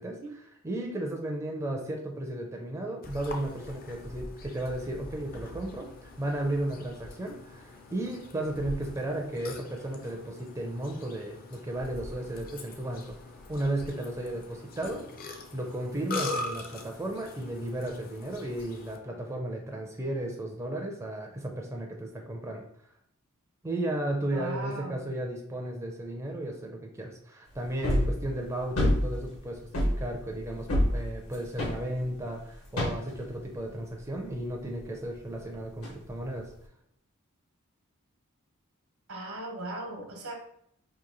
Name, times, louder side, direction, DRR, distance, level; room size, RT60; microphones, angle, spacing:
voice 1, 0.0-13.1 13.5-15.0 15.5-22.6 23.6-36.5, right 1 dB, 15° right, 1 dB, 0.4 m, -34 dB
Burping eructation, 3.0-19.0, left 2 dB, 45° left, 0.5 m, -42 dB
voice 2, 24.3-25.1 39.1-40.3, right 2 dB, 80° right, 1 dB, 1.0 m, -38 dB
sound 1, 27.8-28.2 28.8-29.4 29.7-32.3 32.8-33.2 35.8-35.9, left 1 dB, 80° left, 1.3 m, -26 dB
2.9 x 2.5 x 3.8 m, 0.71 s
head